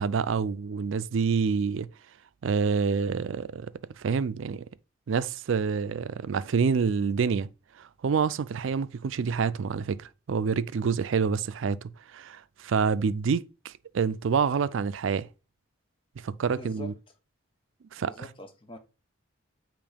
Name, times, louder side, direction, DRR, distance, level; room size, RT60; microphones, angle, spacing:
voice 1, 0.0-1.9 2.4-4.6 5.1-7.5 7.8-15.3 16.2-16.9 17.9-18.1, right 5 dB, 70° right, 0.4 m, -27 dB
voice 2, 16.6-16.9 18.0-18.8, left 2 dB, 25° left, 0.9 m, -44 dB
6.9 x 3.0 x 5.1 m
head